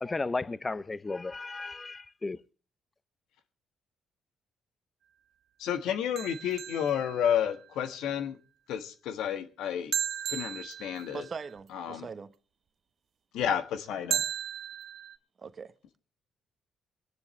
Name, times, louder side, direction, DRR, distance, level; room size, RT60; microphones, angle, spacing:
voice 1, 0.0-2.4, left 3 dB, 25° left, 0.7 m, -34 dB
voice 2, 5.6-8.4 8.7-9.9 10.3-11.2 11.7-12.1 13.3-14.2, left 9 dB, 80° left, 1.5 m, -31 dB
sound 1, 6.2-7.7 9.9-11.5 14.1-15.2, right 10 dB, 65° right, 0.6 m, -35 dB
voice 3, 11.1-12.3 15.4-15.7, right 5 dB, 45° right, 1.1 m, -41 dB
26.0 x 9.9 x 3.3 m
supercardioid pair, 70°, 0 cm